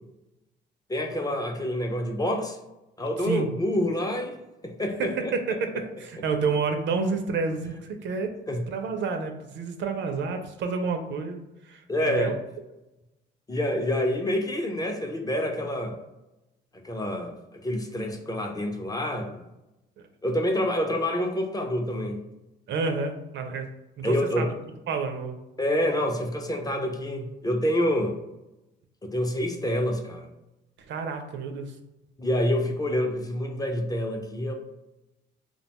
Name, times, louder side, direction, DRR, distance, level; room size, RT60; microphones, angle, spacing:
voice 1, 0.9-2.6 3.0-4.4 4.6-5.3 8.5-8.6 11.9-12.4 13.5-16.0 16.8-19.5 20.2-22.2 24.0-24.5 25.6-28.2 29.0-30.3 32.2-34.5, left 1 dB, 20° left, 3 dB, 0.4 m, -27 dB
voice 2, 5.0-8.4 8.7-12.3 22.7-23.7 24.0-24.5 24.9-25.4 30.9-31.7, right 4 dB, 65° right, 6 dB, 0.4 m, -29 dB
2.4 x 2.2 x 2.8 m, 0.95 s
cardioid pair, 90°, 20 cm